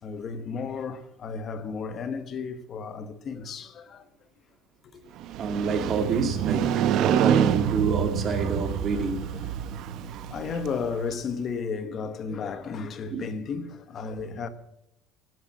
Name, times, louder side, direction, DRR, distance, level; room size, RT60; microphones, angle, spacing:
voice 1, 0.0-4.0 4.9-5.0 8.2-8.4 8.7-14.5, left 5 dB, 30° left, 1.2 m, -34 dB
Motorcycle, 5.2-11.1, right 10 dB, 45° right, 0.9 m, -27 dB
voice 2, 5.4-9.2 13.1-13.2, right 5 dB, 30° right, 2.1 m, -27 dB
17.5 x 9.2 x 7.4 m
cardioid pair, 170°, 0 cm